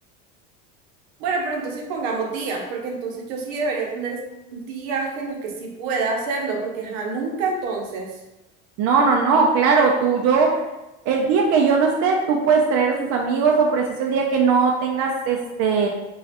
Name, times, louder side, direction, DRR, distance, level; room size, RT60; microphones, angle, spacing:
voice 1, 1.2-4.2 4.5-8.2, right 4 dB, 80° right, 1 dB, 0.8 m, -27 dB
voice 2, 8.8-10.6 11.1-15.9, right 5 dB, 55° right, 1 dB, 0.4 m, -19 dB
3.1 x 2.3 x 2.8 m, 0.98 s
supercardioid pair, 125°, 30 cm